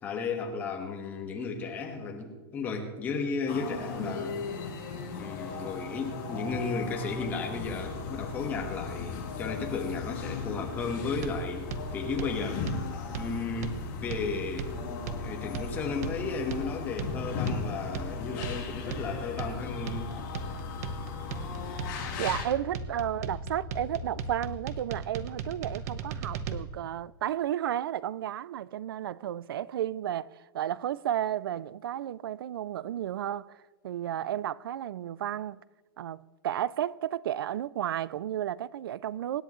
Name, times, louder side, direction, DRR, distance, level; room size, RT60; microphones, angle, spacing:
voice 1, 0.0-4.4 5.1-12.7 13.1-14.7 15.2-20.1, left 4 dB, 15° left, 1.5 m, -34 dB
sound 1, 3.5-22.4, left 5 dB, 35° left, 4.0 m, -38 dB
sound 2, 7.5-24.6, left 5 dB, 55° left, 4.0 m, -43 dB
sound 3, 11.2-26.6, right 6 dB, 40° right, 1.0 m, -38 dB
voice 2, 22.2-35.6 36.0-39.4, right 11 dB, 70° right, 0.5 m, -33 dB
25.0 x 10.5 x 3.2 m
supercardioid pair, 175°, 13 cm